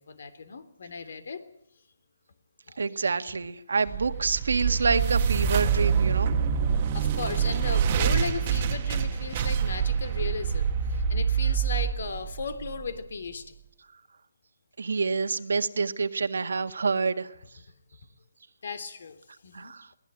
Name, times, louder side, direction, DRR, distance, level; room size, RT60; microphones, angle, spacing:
voice 1, 0.0-1.4 2.7-2.8 6.9-13.5 18.6-19.7, left 5 dB, 55° left, 11 dB, 3.1 m, -36 dB
voice 2, 2.8-6.4 14.8-17.3 19.5-19.9, right 4 dB, 70° right, 10 dB, 1.7 m, -27 dB
sound 1, 3.9-13.0, right 7 dB, 25° right, 1.7 m, -26 dB
22.5 x 18.0 x 9.0 m, 0.72 s
hypercardioid pair, 170°, 0 cm